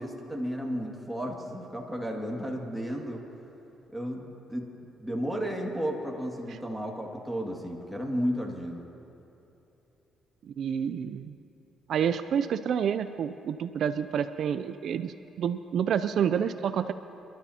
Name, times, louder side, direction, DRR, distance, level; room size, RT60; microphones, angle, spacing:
voice 1, 0.0-3.2 3.9-4.7 5.0-8.9, equal, ahead, -1 dB, 2.1 m, -33 dB
voice 2, 10.4-11.3 11.9-16.9, right 8 dB, 65° right, 11 dB, 0.4 m, -29 dB
27.0 x 12.5 x 2.9 m, 2.9 s
cardioid pair, 90°, 0 cm